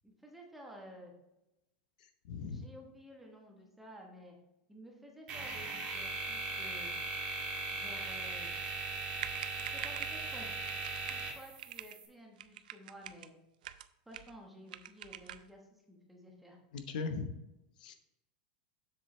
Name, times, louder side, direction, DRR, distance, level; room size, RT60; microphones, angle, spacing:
voice 1, 0.0-1.1 2.5-4.4 4.7-6.9 7.7-8.5 9.7-10.6 11.0-13.3 14.1-15.6 15.9-16.6, equal, 5° right, 0 dB, 1.1 m, -53 dB
voice 2, 2.3-2.6 16.7-17.3 17.8-18.0, left 4 dB, 75° left, 8 dB, 0.9 m, -38 dB
sound 1, 5.3-12.1, right 3 dB, 25° right, 1.5 m, -39 dB
sound 2, 9.2-10.2 10.7-11.3 11.6-12.0 12.4-13.3 13.6-14.4 14.7-15.5, right 12 dB, 90° right, 0.4 m, -45 dB
7.5 x 6.6 x 3.2 m, 0.92 s
supercardioid pair, 170°, 4 cm